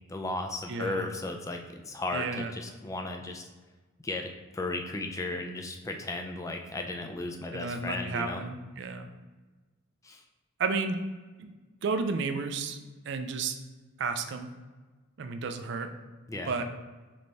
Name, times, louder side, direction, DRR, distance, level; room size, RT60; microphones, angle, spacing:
voice 1, 0.1-3.5 4.0-8.4 10.0-10.2 16.3-16.5, left 2 dB, 15° left, 4 dB, 0.3 m, -35 dB
voice 2, 0.7-1.1 2.1-2.5 7.5-9.1 10.6-11.0 11.4-11.5 11.8-12.8 13.1-13.5 14.0-14.5 15.2-15.9 16.5-16.7, right 4 dB, 60° right, 7 dB, 0.4 m, -32 dB
3.3 x 3.2 x 3.9 m, 1.3 s
head